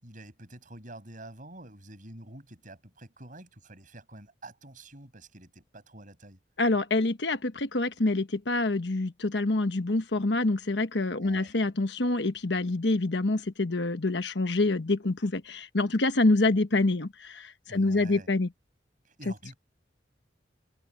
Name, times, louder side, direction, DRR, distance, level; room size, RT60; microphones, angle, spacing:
voice 1, 0.0-6.4 11.1-11.5 17.7-18.3 19.0-19.6, right 1 dB, 45° right, 7.2 m, -47 dB
voice 2, 6.6-18.5, left 2 dB, 70° left, 1.2 m, -26 dB
head